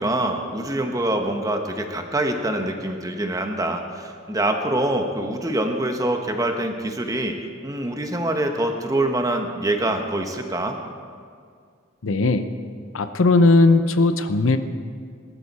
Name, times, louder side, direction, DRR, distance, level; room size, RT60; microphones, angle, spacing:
voice 1, 0.0-7.3 7.6-10.8, right 1 dB, 15° right, 4 dB, 1.0 m, -25 dB
voice 2, 12.0-12.5 12.9-14.6, left 3 dB, 90° left, 9 dB, 0.7 m, -17 dB
19.0 x 12.0 x 4.2 m, 2.1 s
head